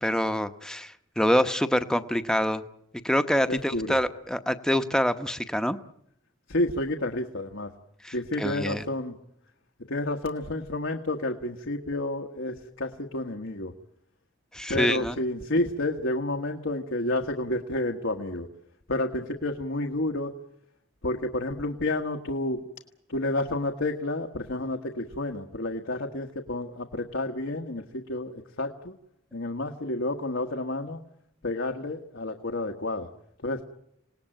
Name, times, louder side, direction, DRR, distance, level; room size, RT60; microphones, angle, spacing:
voice 1, 0.0-2.6 3.0-5.8 8.0-8.8 14.5-15.1, equal, 5° left, 9 dB, 0.9 m, -26 dB
voice 2, 3.5-4.0 6.5-7.7 8.1-9.2 9.9-13.7 14.7-18.5 18.9-20.3 21.0-22.7 23.1-28.9 29.3-31.0 31.4-33.1 33.4-33.6, left 1 dB, 85° left, 3 dB, 1.5 m, -30 dB
27.5 x 18.5 x 9.0 m, 0.77 s
head